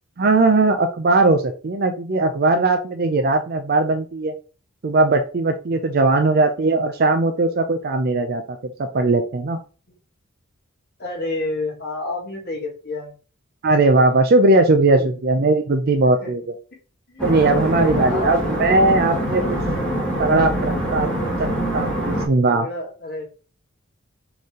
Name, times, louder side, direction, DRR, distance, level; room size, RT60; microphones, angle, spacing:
voice 1, 0.2-4.3 4.8-9.6 13.6-16.4 17.2-19.6 20.2-21.1 21.4-22.7, right 2 dB, 45° right, 6 dB, 0.5 m, -19 dB
voice 2, 11.0-13.1 14.9-15.2 16.0-16.3 16.7-16.8 17.1-18.3 22.5-23.3, left 2 dB, 50° left, -2 dB, 2.0 m, -30 dB
sound 1, 17.2-22.3, right 1 dB, 5° left, 1.5 m, -24 dB
4.4 x 3.3 x 3.7 m, 0.35 s
head